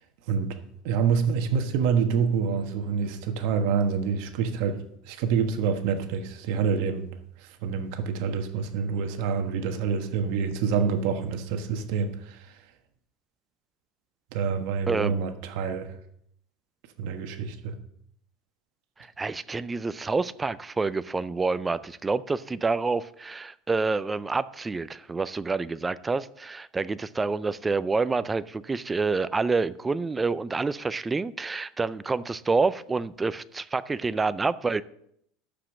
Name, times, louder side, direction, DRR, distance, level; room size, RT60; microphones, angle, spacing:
voice 1, 0.8-7.1 7.6-12.5 14.3-15.9 17.0-17.8, right 6 dB, 55° right, 1.3 m, -27 dB
voice 2, 19.2-34.8, right 4 dB, 10° right, 0.3 m, -28 dB
12.0 x 5.1 x 7.3 m
supercardioid pair, 170°, 0 cm